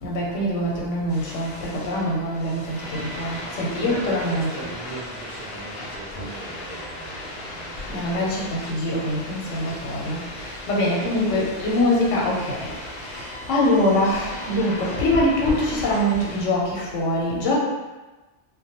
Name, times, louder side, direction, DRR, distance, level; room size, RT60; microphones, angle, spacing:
voice 1, 0.0-4.5 7.9-10.2 10.7-12.7 13.5-17.6, left 1 dB, 80° left, -4 dB, 1.0 m, -23 dB
sound 1, 1.1-16.4, left 1 dB, 60° left, 0.6 m, -36 dB
voice 2, 3.4-8.4, right 2 dB, 55° right, -4 dB, 0.4 m, -39 dB
2.2 x 2.1 x 2.8 m, 1.2 s
omnidirectional pair, 1.3 m